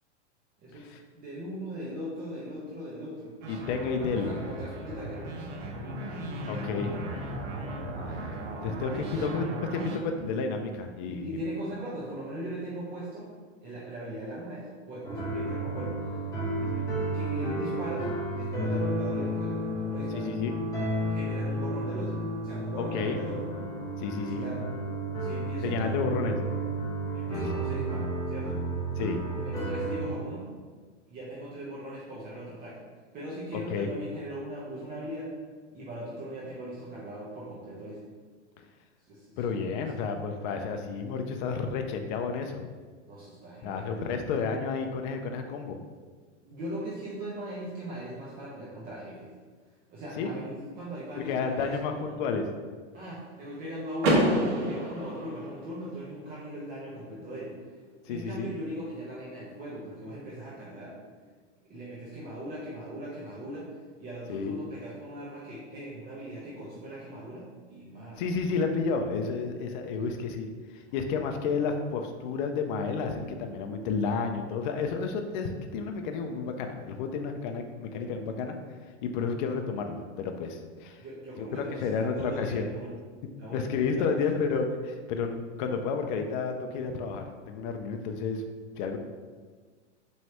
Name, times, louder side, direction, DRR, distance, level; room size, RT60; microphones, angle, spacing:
voice 1, 1.1-3.3 3.8-5.3 9.0-9.2 11.1-13.3 13.6-16.2 17.1-20.3 21.1-22.1 22.4-23.5 24.2-24.6 25.2-26.0 27.1-28.6 29.4-30.5 31.1-32.7 33.1-35.3 35.7-38.0 39.1-39.4 43.1-43.9 46.4-49.3 49.9-52.2 52.9-57.5 58.1-60.9 61.7-63.7 64.0-67.4 67.7-68.5 81.0-82.9 83.4-83.6 83.9-84.2, equal, 25° right, -8 dB, 0.9 m, -39 dB
sound 1, 3.4-10.0, right 1 dB, 85° right, 0.8 m, -37 dB
voice 2, 3.5-4.3 6.5-6.9 8.6-11.4 16.6-16.9 20.1-20.6 22.8-23.2 24.0-24.5 25.6-26.4 29.0-29.2 33.5-33.9 39.4-42.6 43.6-45.8 50.2-50.3 51.1-52.5 58.1-58.5 64.3-64.6 68.2-78.6 79.0-81.0 81.4-82.7 83.5-88.4 88.8-89.0, left 5 dB, 45° left, 4 dB, 0.4 m, -31 dB
sound 2, 15.0-30.1, right 1 dB, 10° left, 0.8 m, -32 dB
Car / Door, 54.0-55.9, right 1 dB, 60° right, 1.3 m, -27 dB
4.5 x 3.1 x 2.9 m, 1.5 s
hypercardioid pair, 135°, 37 cm